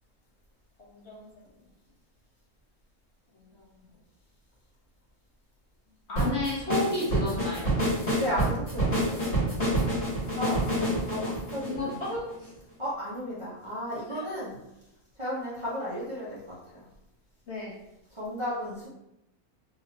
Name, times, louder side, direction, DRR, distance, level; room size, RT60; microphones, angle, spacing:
voice 1, 0.8-1.3 3.5-3.7 6.1-7.7 11.6-12.5 14.1-14.3 17.5-17.7, left 2 dB, 55° left, -5 dB, 1.0 m, -32 dB
sound 1, 6.2-12.5, right 1 dB, 35° left, 1.4 m, -27 dB
voice 2, 8.2-9.2 10.3-11.9 12.8-14.5 15.2-16.8 18.1-18.9, equal, 25° right, -10 dB, 0.9 m, -34 dB
3.9 x 2.7 x 2.8 m, 0.88 s
omnidirectional pair, 1.6 m